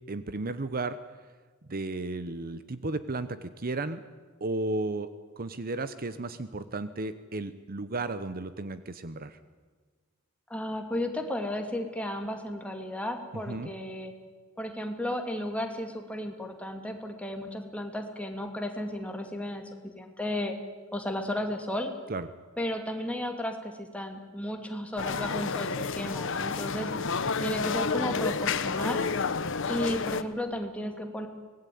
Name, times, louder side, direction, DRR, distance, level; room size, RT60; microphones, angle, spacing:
voice 1, 0.1-1.0 1.7-4.0 4.4-9.4 13.5-13.7 22.1-22.3, right 2 dB, 45° right, 12 dB, 0.9 m, -34 dB
voice 2, 10.5-14.1 14.6-20.6 20.9-21.9 22.6-26.9 27.4-29.1 29.7-31.3, left 1 dB, 5° left, 4 dB, 2.6 m, -34 dB
sound 1, 25.0-30.2, left 4 dB, 65° left, 1.2 m, -30 dB
24.5 x 19.0 x 9.5 m, 1.4 s
head